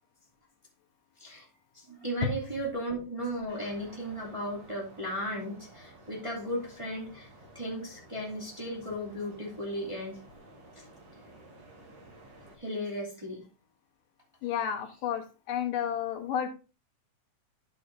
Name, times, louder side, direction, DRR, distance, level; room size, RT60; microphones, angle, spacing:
voice 1, 1.7-7.3 7.5-10.2 10.8-10.9 12.6-13.4, equal, 10° right, -3 dB, 2.0 m, -35 dB
sound 1, 3.5-12.6, right 2 dB, 70° right, 4.3 m, -53 dB
voice 2, 14.4-16.5, left 9 dB, 85° left, 5 dB, 2.7 m, -31 dB
11.0 x 8.3 x 2.6 m, 0.32 s
omnidirectional pair, 3.7 m